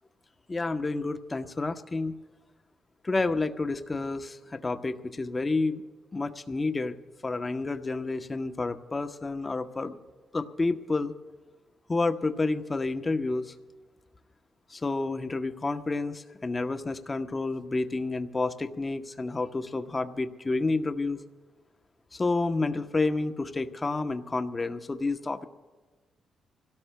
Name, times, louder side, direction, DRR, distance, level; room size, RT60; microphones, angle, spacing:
voice 1, 0.5-2.2 3.0-5.8 6.1-7.0 7.2-9.9 10.3-11.1 11.9-13.5 14.7-21.2 22.1-25.5, left 3 dB, 25° left, 8 dB, 0.8 m, -29 dB
28.0 x 17.5 x 2.2 m, 1.3 s
cardioid pair, 85°, 0 cm